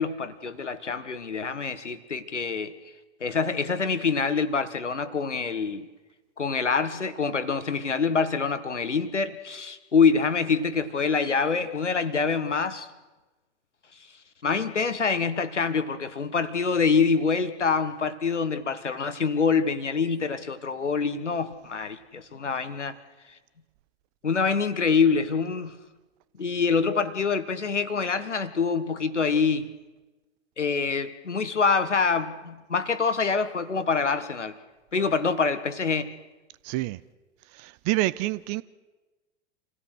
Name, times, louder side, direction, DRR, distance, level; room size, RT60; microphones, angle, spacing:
voice 1, 0.0-2.7 3.2-5.9 6.4-12.9 14.4-23.0 24.2-25.8 26.4-29.7 30.6-34.6 34.9-36.1, left 5 dB, 85° left, 1.4 m, -25 dB
voice 2, 36.6-37.0 37.6-38.6, right 19 dB, 35° right, 0.7 m, -27 dB
27.0 x 16.5 x 6.4 m
figure-of-eight pair, 95°, 35 cm